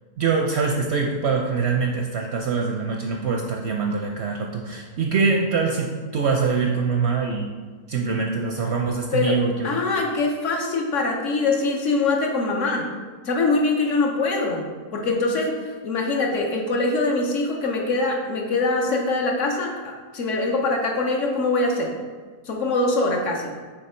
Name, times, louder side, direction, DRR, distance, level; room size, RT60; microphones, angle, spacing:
voice 1, 0.2-7.5 7.9-9.8, right 5 dB, 65° right, 1 dB, 0.7 m, -24 dB
voice 2, 9.6-12.9 13.2-21.9 22.5-23.5, left 3 dB, 60° left, 1 dB, 1.1 m, -23 dB
6.6 x 3.3 x 4.3 m, 1.5 s
omnidirectional pair, 1.5 m